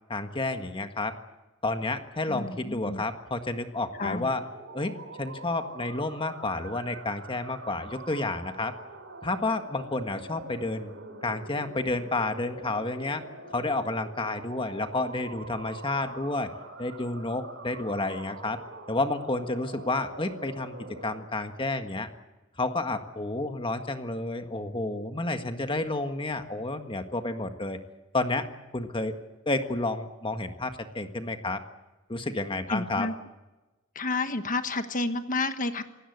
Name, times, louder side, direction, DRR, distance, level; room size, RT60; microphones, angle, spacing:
voice 1, 0.1-1.1 1.6-4.4 4.7-8.7 9.2-10.9 11.2-13.2 13.5-16.5 16.8-18.6 18.9-20.8 21.0-22.1 22.6-27.8 28.1-28.5 28.7-29.1 29.4-31.6 32.1-33.1, left 2 dB, 25° left, 7 dB, 1.6 m, -30 dB
voice 2, 2.3-3.0 4.0-4.3 32.7-33.1 33.9-35.8, left 3 dB, 40° left, 9 dB, 1.4 m, -30 dB
sound 1, 3.9-21.2, right 2 dB, 60° right, 4.6 m, -44 dB
26.5 x 18.0 x 8.1 m, 1.1 s
head